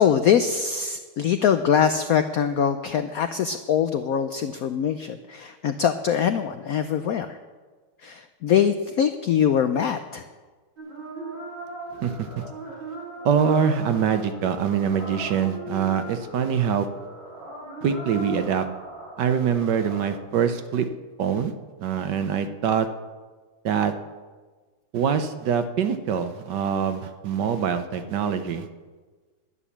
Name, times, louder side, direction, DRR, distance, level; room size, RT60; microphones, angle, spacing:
voice 1, 0.0-7.4 8.0-10.2, left 8 dB, 75° left, 9 dB, 0.8 m, -23 dB
sound 1, 10.8-20.1, right 1 dB, 80° right, 5.8 m, -39 dB
voice 2, 12.0-12.4 13.2-16.9 17.8-18.7 19.2-20.9 21.2-21.5 21.8-22.9 23.6-23.9 24.9-28.7, right 7 dB, 65° right, 9 dB, 1.3 m, -24 dB
11.0 x 10.0 x 7.2 m, 1.4 s
omnidirectional pair, 2.2 m